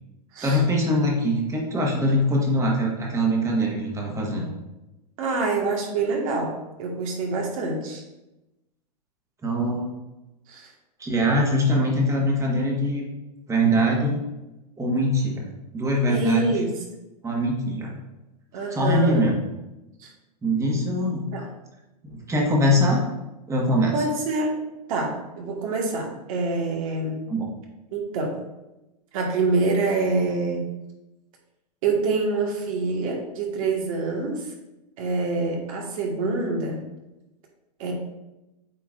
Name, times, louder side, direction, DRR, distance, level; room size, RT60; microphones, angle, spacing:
voice 1, 0.4-4.5 9.4-9.9 11.0-13.1 13.5-14.2 14.8-15.5 15.7-16.5 17.2-17.9 18.7-19.4 20.4-21.4 22.0-23.0 23.5-23.9 27.3-27.5, equal, 15° right, -1 dB, 1.5 m, -22 dB
voice 2, 5.2-8.0 10.5-10.7 16.1-16.7 18.5-19.2 20.0-20.1 21.3-21.4 23.9-24.6 24.9-27.2 27.9-28.4 29.1-30.6 31.8-34.5 35.0-36.8 37.8-37.9, right 3 dB, 55° right, 0 dB, 1.7 m, -26 dB
8.1 x 4.6 x 2.5 m, 0.98 s
hypercardioid pair, 120°, 21 cm